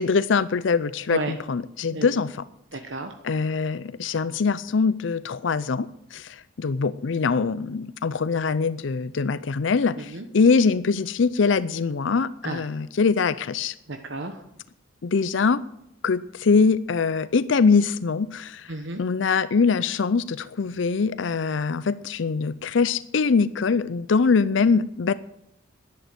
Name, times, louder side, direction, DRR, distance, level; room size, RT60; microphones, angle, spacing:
voice 1, 0.0-2.4 3.2-13.7 15.0-15.6 16.0-18.7 19.0-25.1, left 5 dB, 70° left, 16 dB, 0.5 m, -23 dB
voice 2, 2.7-3.2 10.0-10.3 12.4-12.6 13.9-14.4 18.7-19.0, right 2 dB, 65° right, 6 dB, 1.1 m, -32 dB
11.0 x 11.0 x 7.9 m, 0.80 s
head